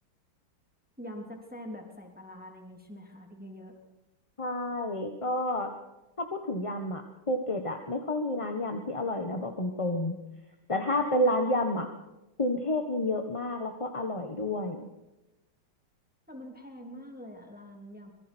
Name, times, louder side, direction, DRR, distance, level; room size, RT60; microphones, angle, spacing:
voice 1, 1.0-3.8 16.3-18.1, equal, 5° right, 2 dB, 3.1 m, -44 dB
voice 2, 4.4-5.7 6.2-10.1 10.7-11.9 12.4-14.9, left 1 dB, 20° left, 4 dB, 1.3 m, -30 dB
26.0 x 22.0 x 4.6 m, 0.96 s
omnidirectional pair, 2.3 m